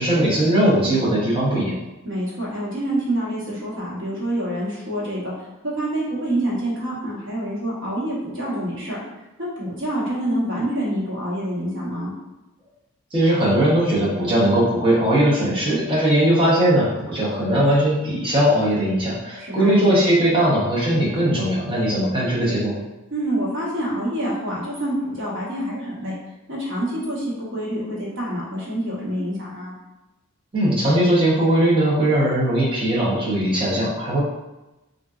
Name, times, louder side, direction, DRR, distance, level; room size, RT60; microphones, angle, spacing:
voice 1, 0.0-1.8 13.1-22.8 30.5-34.2, right 1 dB, 25° right, -8 dB, 0.8 m, -19 dB
voice 2, 2.0-5.3 5.6-9.0 9.4-12.1 19.4-19.8 23.1-26.1 26.5-29.7, right 1 dB, 65° right, -5 dB, 1.0 m, -27 dB
3.7 x 2.6 x 2.3 m, 1.0 s
head